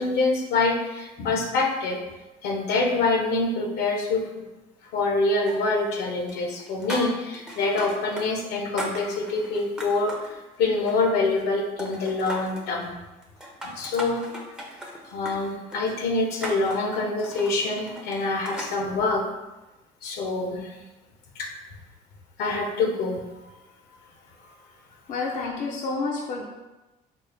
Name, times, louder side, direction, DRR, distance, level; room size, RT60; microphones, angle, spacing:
voice 1, 0.0-2.0 2.4-4.3 4.9-13.0 13.6-14.2 15.0-19.3 20.0-20.8 21.3-21.5 22.4-23.2, left 3 dB, 80° left, 0 dB, 0.8 m, -25 dB
sound 1, 5.5-6.0 6.3-8.3 8.5-10.3 10.7-11.5 11.8-12.7 13.2-18.8, equal, 5° right, 0.6 m, -37 dB
voice 2, 25.1-26.5, left 3 dB, 50° left, -1 dB, 0.5 m, -29 dB
4.2 x 2.0 x 3.4 m, 1.1 s
cardioid pair, 110°, 17 cm